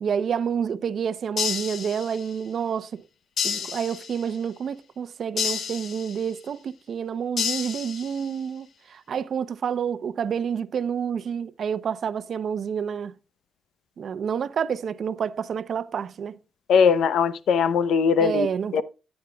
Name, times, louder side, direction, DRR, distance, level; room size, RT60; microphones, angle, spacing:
voice 1, 0.0-3.0 3.4-13.2 14.0-16.4 18.2-18.8, right 7 dB, 65° right, 0.6 m, -29 dB
sound 1, 1.4-2.4 3.4-4.4 5.4-6.4 7.4-8.4, left 7 dB, 60° left, 1.0 m, -30 dB
voice 2, 16.7-18.5 18.7-18.8, left 6 dB, 85° left, 0.7 m, -20 dB
14.0 x 8.9 x 2.3 m
cardioid pair, 85°, 0 cm